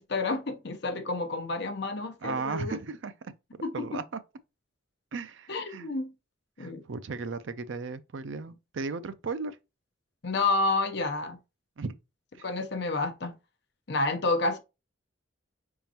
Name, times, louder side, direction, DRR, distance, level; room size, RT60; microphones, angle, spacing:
voice 1, 0.0-2.8 3.6-4.0 5.5-6.1 6.6-6.8 10.2-11.4 12.4-13.3 13.9-14.6, left 3 dB, 55° left, 0.7 m, -29 dB
voice 2, 2.2-3.1 3.7-4.2 5.1-5.9 6.6-9.6 11.8-12.0, right 4 dB, 65° right, 0.5 m, -35 dB
5.1 x 3.7 x 2.8 m
head